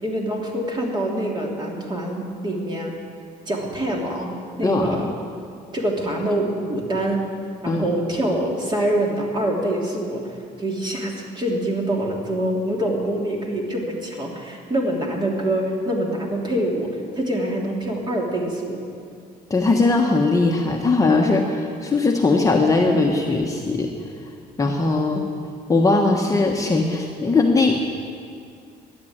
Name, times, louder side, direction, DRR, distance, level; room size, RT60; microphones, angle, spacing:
voice 1, 0.0-2.9 3.5-4.3 4.6-5.1 5.7-7.2 7.6-10.2 10.6-16.9 17.2-18.8, right 1 dB, 25° right, -1 dB, 3.0 m, -25 dB
voice 2, 4.6-5.0 7.7-8.0 19.5-23.9 24.6-25.2 25.7-27.8, left 3 dB, 20° left, 0 dB, 1.2 m, -19 dB
13.0 x 10.0 x 8.7 m, 2.3 s
cardioid pair, 110°, 17 cm